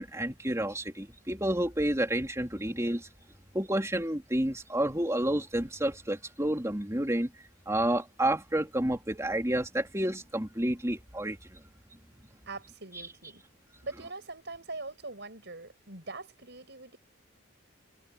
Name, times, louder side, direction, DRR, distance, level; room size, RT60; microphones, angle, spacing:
voice 1, 0.0-3.1 3.5-7.3 7.7-11.6 12.2-12.3, right 1 dB, 15° right, 3.1 m, -30 dB
voice 2, 12.5-13.4 13.8-17.0, right 3 dB, 55° right, 7.6 m, -42 dB
head